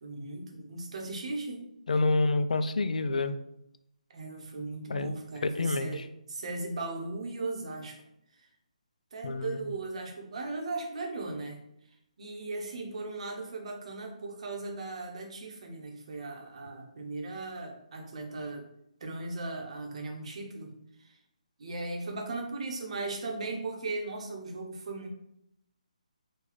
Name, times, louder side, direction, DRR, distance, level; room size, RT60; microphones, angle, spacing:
voice 1, 0.0-1.7 4.1-8.0 9.1-11.6 12.2-18.7 19.0-20.7 21.0-21.2 21.6-25.1, right 3 dB, 50° right, 2 dB, 0.8 m, -37 dB
voice 2, 1.9-3.3 4.9-5.1 5.4-6.0 9.2-9.7, left 3 dB, 70° left, 11 dB, 0.3 m, -28 dB
3.9 x 2.2 x 3.1 m, 0.78 s
hypercardioid pair, 160°, 4 cm